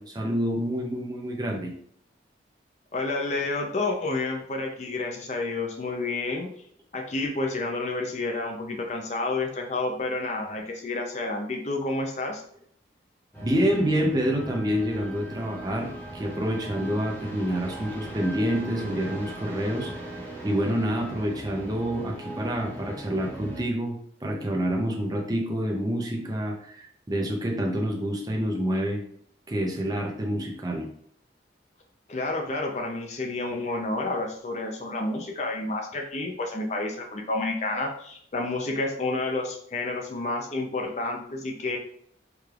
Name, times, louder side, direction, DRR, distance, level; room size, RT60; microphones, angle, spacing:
voice 1, 0.0-1.7 13.4-19.9 20.2-29.0 29.5-30.9, equal, 20° right, 1 dB, 0.6 m, -27 dB
voice 2, 2.9-6.5 6.9-12.4 30.4-30.5 32.1-41.8, left 2 dB, 40° left, 2 dB, 0.5 m, -30 dB
sound 1, 13.3-23.7, right 1 dB, 10° left, 0.9 m, -40 dB
4.7 x 3.3 x 2.4 m, 0.64 s
head